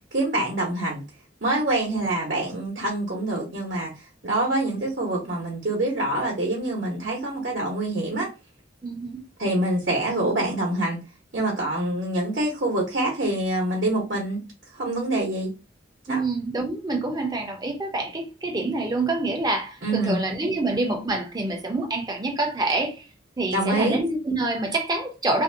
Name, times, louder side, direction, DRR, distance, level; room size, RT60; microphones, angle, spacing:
voice 1, 0.1-1.0 1.4-3.9 4.2-8.3 9.4-11.0 11.3-14.4 14.7-15.5 16.1-16.2 19.8-20.2 23.5-24.0, right 1 dB, 60° right, 0.8 m, -25 dB
voice 2, 8.8-9.2 16.1-23.1 23.4-25.4, right 2 dB, 20° right, 0.6 m, -26 dB
2.6 x 2.1 x 2.6 m
head